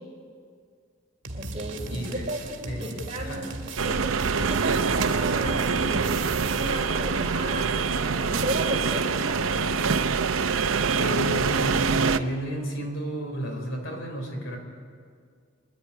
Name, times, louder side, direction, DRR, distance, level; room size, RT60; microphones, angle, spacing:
sound 1, 1.2-7.0, right 2 dB, 65° right, 2.2 m, -38 dB
voice 1, 1.3-3.5 3.8-4.1 4.5-9.9, right 1 dB, 30° right, -1 dB, 4.0 m, -34 dB
voice 2, 1.9-2.3 2.7-3.6 11.0-14.6, equal, 70° left, 3 dB, 3.8 m, -32 dB
sound 2, 3.8-12.2, right 5 dB, 80° right, 0.7 m, -25 dB
28.5 x 10.5 x 9.6 m, 2.1 s
head